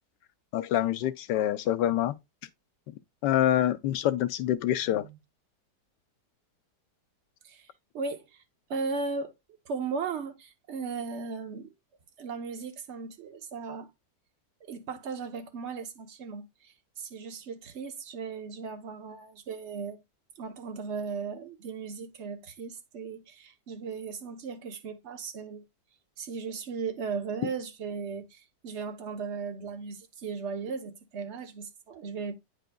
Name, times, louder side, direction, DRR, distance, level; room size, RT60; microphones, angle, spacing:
voice 1, 0.5-2.1 3.2-5.1, left 12 dB, 85° left, 1.3 m, -26 dB
voice 2, 4.9-5.2 7.4-7.7 7.9-8.4 8.7-9.3 9.6-11.7 12.2-13.9 14.6-20.0 20.4-25.7 26.2-32.3, right 5 dB, 50° right, 1.1 m, -37 dB
9.2 x 5.1 x 2.2 m
omnidirectional pair, 1.8 m